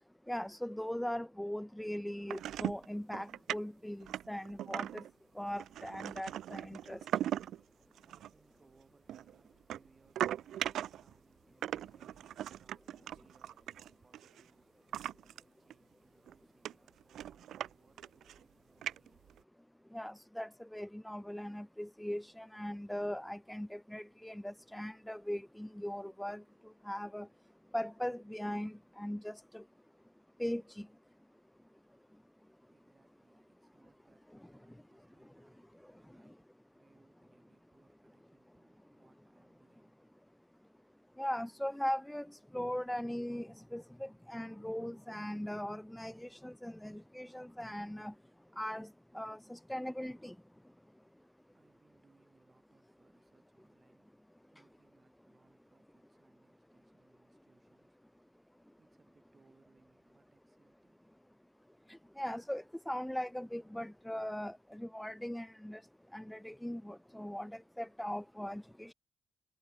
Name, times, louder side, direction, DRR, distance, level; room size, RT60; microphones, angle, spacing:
voice 1, 0.3-5.0 5.4-7.0 19.9-26.4 26.9-27.3 27.7-29.6 30.4-30.9 41.2-42.3 42.5-48.1 48.6-48.9 49.1-50.3 62.2-65.8 66.1-68.9, equal, 5° left, 0.4 m, -39 dB
sound 1, 2.3-2.9 3.1-3.6 4.0-5.1 5.5-7.6 8.0-8.3 9.1-11.1 11.6-14.4 14.9-15.4 15.7-15.8 16.3-16.4 16.6-17.7 18.0-18.4 18.8-19.4, right 11 dB, 65° right, 0.3 m, -39 dB
voice 2, 7.4-15.3 15.6-19.4 32.7-40.0 51.2-61.1, right 4 dB, 35° right, 4.8 m, -71 dB
hypercardioid pair, 40°, 0 cm